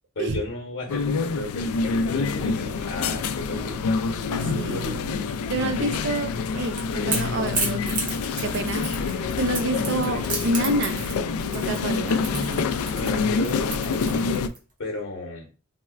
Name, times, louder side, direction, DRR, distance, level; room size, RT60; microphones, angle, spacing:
voice 1, 0.1-3.7 4.5-5.0 5.8-5.9 6.9-7.2 9.8-10.2 12.2-13.7 14.8-15.5, left 2 dB, 60° left, -2 dB, 0.9 m, -33 dB
sound 1, 0.9-14.5, left 4 dB, 90° left, 0.3 m, -27 dB
voice 2, 4.3-4.9 5.5-6.8 7.1-8.1 8.4-11.0 11.5-12.2, right 1 dB, 55° right, 8 dB, 0.4 m, -28 dB
Crackle / Crack, 6.4-14.6, right 3 dB, 40° right, 1.0 m, -32 dB
4.1 x 2.2 x 2.3 m, 0.34 s
head